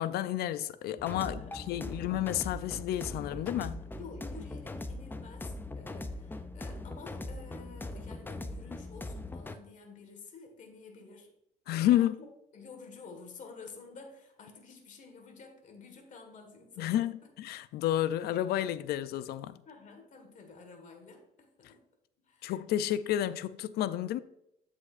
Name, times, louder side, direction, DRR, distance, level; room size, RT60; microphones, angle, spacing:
voice 1, 0.0-3.8 11.7-12.2 16.8-19.6 22.4-24.2, left 12 dB, 70° left, 0.4 m, -31 dB
sound 1, 1.0-9.6, left 2 dB, 10° left, 0.5 m, -41 dB
voice 2, 1.1-2.0 4.0-11.3 11.7-12.1 12.5-17.0 19.7-21.8 22.2-22.5, left 4 dB, 50° left, 1.6 m, -50 dB
8.2 x 7.5 x 2.5 m
cardioid pair, 110°, 17 cm